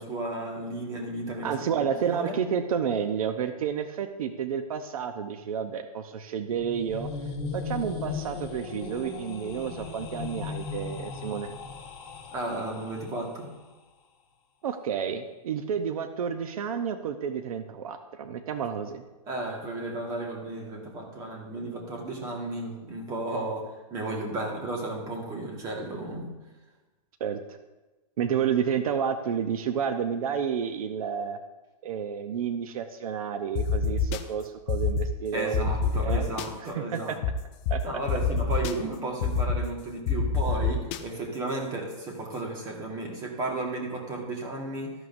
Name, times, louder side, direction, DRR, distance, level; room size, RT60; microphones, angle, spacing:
voice 1, 0.0-1.5 1.8-2.4 12.3-13.5 19.3-26.3 35.3-37.2 37.8-44.9, right 2 dB, 20° right, 0 dB, 1.6 m, -34 dB
voice 2, 1.4-7.1 7.5-11.5 14.6-19.0 27.2-27.6 28.2-31.4 31.8-36.3 36.7-37.2 37.7-37.8, right 7 dB, 70° right, 8 dB, 0.7 m, -30 dB
sound 1, 6.4-13.4, left 5 dB, 40° left, 1.7 m, -37 dB
sound 2, 33.6-34.2 34.7-35.1 35.5-36.5 37.2-37.3 37.7-37.8 38.1-38.7 39.2-39.6 40.1-41.0, left 6 dB, 20° left, 0.3 m, -25 dB
13.0 x 11.0 x 2.6 m, 1.1 s
supercardioid pair, 170°, 19 cm